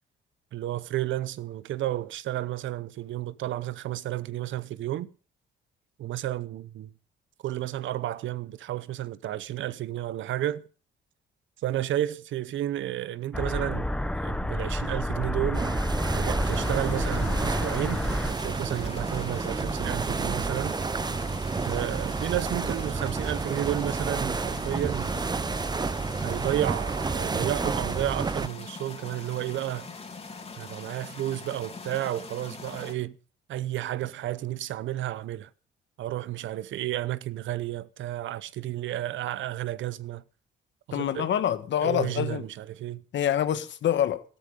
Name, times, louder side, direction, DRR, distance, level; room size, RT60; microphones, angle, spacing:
voice 1, 0.5-5.1 6.0-6.9 7.4-10.6 11.6-13.9 14.1-15.7 16.1-20.8 21.6-25.2 26.2-29.9 30.6-33.1 33.5-35.5 36.0-40.2 40.9-41.3 41.8-43.0, right 13 dB, 75° right, 0.8 m, -32 dB
sound 1, 13.3-18.3, left 1 dB, 5° left, 0.9 m, -29 dB
sound 2, 15.5-28.5, right 4 dB, 20° right, 0.6 m, -30 dB
sound 3, 16.4-32.9, left 4 dB, 30° left, 2.9 m, -42 dB
voice 2, 40.9-42.4 43.1-44.2, left 10 dB, 65° left, 1.3 m, -26 dB
13.5 x 13.0 x 5.2 m
cardioid pair, 90°, 20 cm